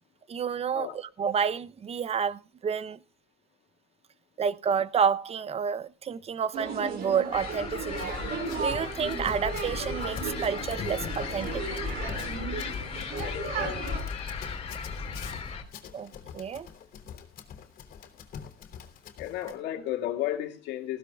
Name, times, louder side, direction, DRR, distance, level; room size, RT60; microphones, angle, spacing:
voice 1, 0.3-3.0 4.4-8.2 8.6-11.6 15.9-16.7, right 7 dB, 35° right, 0.7 m, -30 dB
sound 1, 6.5-14.0, right 4 dB, 65° right, 5.1 m, -35 dB
sound 2, 7.3-15.6, left 5 dB, 35° left, 3.3 m, -36 dB
Run, 7.9-19.5, left 8 dB, 60° left, 3.0 m, -45 dB
voice 2, 13.2-13.8 19.2-21.0, left 12 dB, 90° left, 2.2 m, -33 dB
19.5 x 15.5 x 2.4 m
cardioid pair, 110°, 17 cm